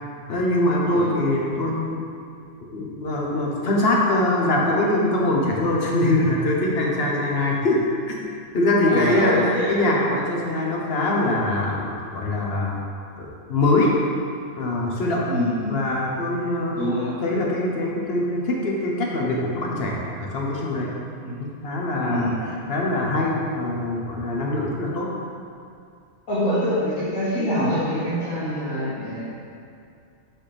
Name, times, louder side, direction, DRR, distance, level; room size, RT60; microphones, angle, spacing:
voice 1, 0.3-2.0 2.7-7.8 8.1-8.2 8.5-12.8 13.2-14.0 14.6-15.3 15.7-16.9 17.2-20.9 21.4-25.1, left 1 dB, 55° left, -2 dB, 1.1 m, -23 dB
voice 2, 8.9-9.8 15.2-15.7 16.8-17.1 21.2-21.4 22.0-22.4 26.3-29.2, left 1 dB, 90° left, -15 dB, 2.2 m, -25 dB
6.2 x 5.9 x 3.4 m, 2.4 s
omnidirectional pair, 1.3 m